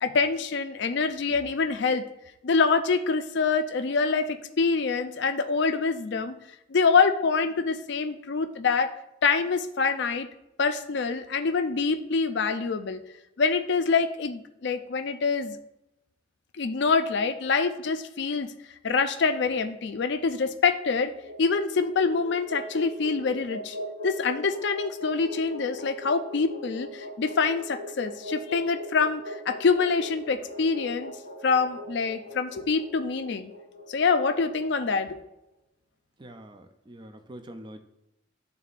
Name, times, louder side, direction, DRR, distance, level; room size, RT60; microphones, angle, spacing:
voice 1, 0.0-2.0 2.4-6.3 6.7-8.9 9.2-10.3 10.6-13.0 13.4-15.6 16.6-18.5 18.8-21.1 21.4-23.8 24.0-31.1 31.4-33.5 33.9-35.2, left 4 dB, 65° left, 9 dB, 0.5 m, -25 dB
sound 1, 20.8-35.1, left 1 dB, 85° right, 1.8 m, -40 dB
voice 2, 36.2-37.8, right 1 dB, 25° right, 8 dB, 0.4 m, -45 dB
11.0 x 4.0 x 2.4 m, 0.86 s
head